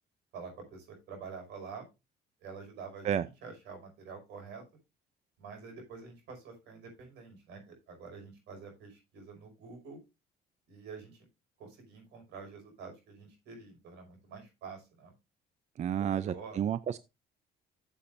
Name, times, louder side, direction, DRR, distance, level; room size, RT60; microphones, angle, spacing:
voice 1, 0.3-1.9 2.4-4.6 5.4-10.0 10.7-11.3 11.6-15.1 16.0-16.6, right 5 dB, 85° right, 5.4 m, -47 dB
voice 2, 15.8-17.0, right 9 dB, 45° right, 0.5 m, -31 dB
14.5 x 7.2 x 2.6 m
cardioid pair, 110°, 17 cm